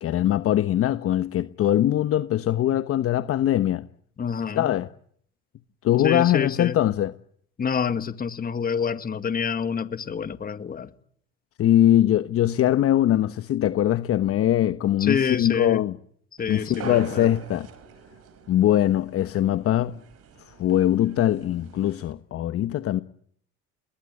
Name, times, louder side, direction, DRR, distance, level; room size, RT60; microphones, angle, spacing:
voice 1, 0.0-3.8 4.5-4.9 5.8-7.1 11.6-15.9 16.5-17.7 18.5-20.0 20.5-23.0, left 12 dB, 45° left, 1.2 m, -22 dB
voice 2, 4.2-4.7 6.0-6.8 7.6-10.9 15.0-15.8 16.4-17.3, left 6 dB, 30° left, 2.0 m, -27 dB
sound 1, 16.4-22.1, right 5 dB, 50° right, 5.4 m, -43 dB
28.0 x 20.5 x 9.9 m
supercardioid pair, 90°, 31 cm